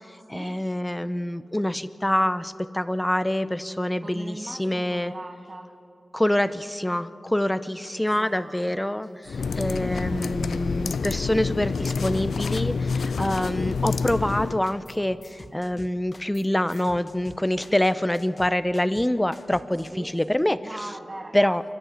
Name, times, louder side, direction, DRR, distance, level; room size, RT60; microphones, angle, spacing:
voice 1, 0.3-5.1 6.1-20.6 21.3-21.6, left 1 dB, 10° left, 14 dB, 0.7 m, -26 dB
voice 2, 4.0-5.7 7.7-9.8 10.1-10.7 11.1-11.9 13.4-13.8 15.5-15.8 16.8-17.0 17.7-17.8 19.9-21.6, right 2 dB, 30° right, 4 dB, 1.2 m, -42 dB
sound 1, 9.3-14.6, left 5 dB, 85° left, 0.4 m, -28 dB
sound 2, 13.9-15.0 15.2-19.9, left 2 dB, 35° left, 1.3 m, -47 dB
29.0 x 12.0 x 8.2 m, 2.8 s
wide cardioid pair, 80°, 0 cm